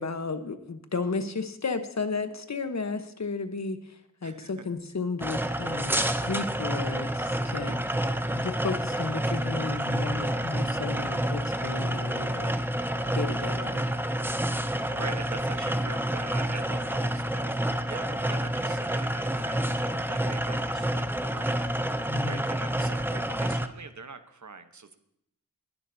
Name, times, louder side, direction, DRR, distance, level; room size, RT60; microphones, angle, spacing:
voice 1, 0.0-4.0 4.2-7.8 8.3-12.5 13.1-13.8 22.1-22.4, left 4 dB, 55° left, 9 dB, 1.1 m, -33 dB
voice 2, 4.2-4.6 14.7-21.6 22.2-25.0, right 4 dB, 60° right, 9 dB, 1.0 m, -43 dB
sound 1, 5.2-23.7, right 1 dB, 5° right, 0.6 m, -29 dB
20.0 x 11.0 x 2.7 m, 0.75 s
wide cardioid pair, 85°, 34 cm